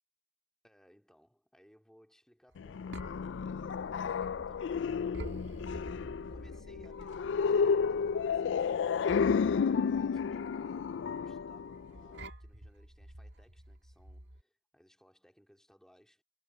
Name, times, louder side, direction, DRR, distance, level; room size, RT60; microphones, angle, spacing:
voice 1, 0.6-16.2, equal, 5° left, 3.7 m, -63 dB
sound 1, 2.5-14.4, right 1 dB, 65° right, 2.3 m, -49 dB
horror mix, 2.6-12.3, left 6 dB, 85° left, 0.4 m, -32 dB
head